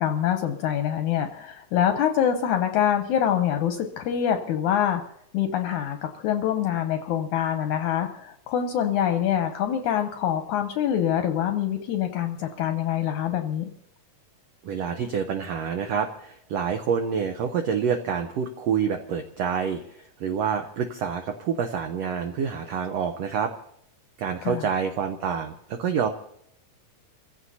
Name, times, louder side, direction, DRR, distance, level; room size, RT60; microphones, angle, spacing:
voice 1, 0.0-5.0 5.3-13.7 24.4-24.7, left 9 dB, 75° left, 6 dB, 1.9 m, -25 dB
voice 2, 14.6-23.5 24.2-26.1, right 7 dB, 80° right, 5 dB, 1.5 m, -27 dB
28.5 x 15.5 x 2.8 m, 0.72 s
omnidirectional pair, 4.1 m